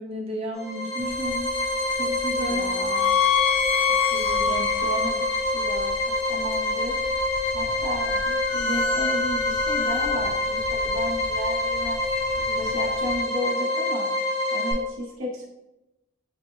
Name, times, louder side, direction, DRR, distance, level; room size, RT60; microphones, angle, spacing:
voice 1, 0.0-1.4 1.9-2.7, equal, 30° right, 0 dB, 0.5 m, -32 dB
sound 1, 0.5-14.7, left 2 dB, 15° left, 1.4 m, -26 dB
sound 2, 1.0-13.2, left 6 dB, 45° left, 0.5 m, -29 dB
voice 2, 2.4-3.2 4.0-7.0 7.5-12.0 12.3-14.1 14.5-15.5, equal, 85° right, -4 dB, 1.1 m, -34 dB
4.7 x 2.5 x 3.1 m, 0.97 s
head